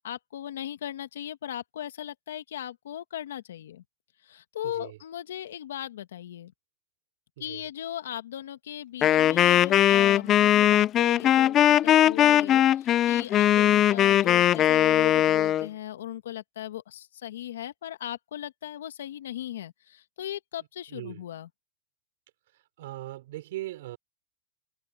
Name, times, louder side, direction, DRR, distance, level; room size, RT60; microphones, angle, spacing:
voice 1, 0.0-3.8 4.2-6.5 7.4-21.5, left 11 dB, 85° left, 1.8 m, -38 dB
voice 2, 4.6-5.0 7.4-7.7 13.6-13.8 20.9-21.2 22.5-24.0, right 16 dB, 75° right, 4.1 m, -40 dB
Wind instrument woodwind instrument, 9.0-15.7, left 11 dB, 40° left, 0.4 m, -20 dB
hypercardioid pair, 110°, 0 cm